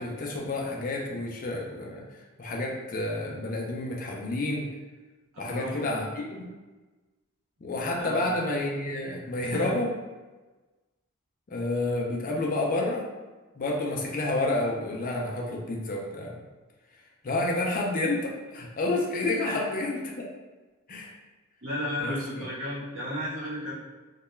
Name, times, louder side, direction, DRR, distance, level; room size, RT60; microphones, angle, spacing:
voice 1, 0.0-2.0 2.4-4.7 5.4-6.5 7.6-9.9 11.5-13.0 13.6-16.4 17.2-20.3 20.9-21.1 22.0-22.2, left 2 dB, 40° left, -1 dB, 0.4 m, -29 dB
voice 2, 5.3-5.9 8.0-8.3 9.4-9.7 19.4-19.6 21.6-23.7, equal, 65° right, -7 dB, 1.0 m, -34 dB
2.2 x 2.1 x 3.0 m, 1.2 s
head